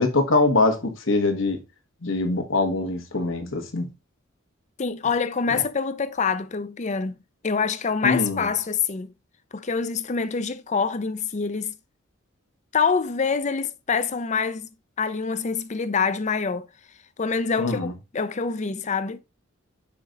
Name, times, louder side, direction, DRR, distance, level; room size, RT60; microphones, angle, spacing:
voice 1, 0.0-1.6 2.0-3.9 5.5-5.6 8.0-8.5 17.6-17.9, left 3 dB, 65° left, 1.4 m, -23 dB
voice 2, 4.8-7.2 7.4-9.1 9.5-11.7 12.7-14.7 15.0-16.7 17.2-19.2, left 5 dB, 35° left, 0.5 m, -25 dB
6.0 x 4.7 x 3.9 m
head